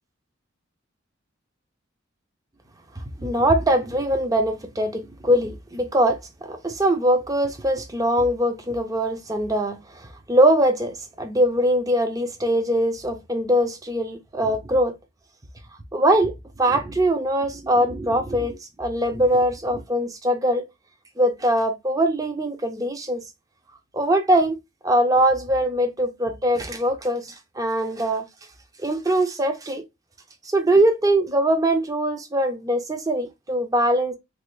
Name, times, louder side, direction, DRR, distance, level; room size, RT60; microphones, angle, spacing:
voice 1, 3.2-6.2 6.5-14.9 15.9-16.3 16.6-20.6 21.2-23.2 23.9-24.6 24.8-28.2 28.8-29.8 30.5-34.1, right 1 dB, 15° right, 0.5 m, -22 dB
3.3 x 2.3 x 3.1 m
head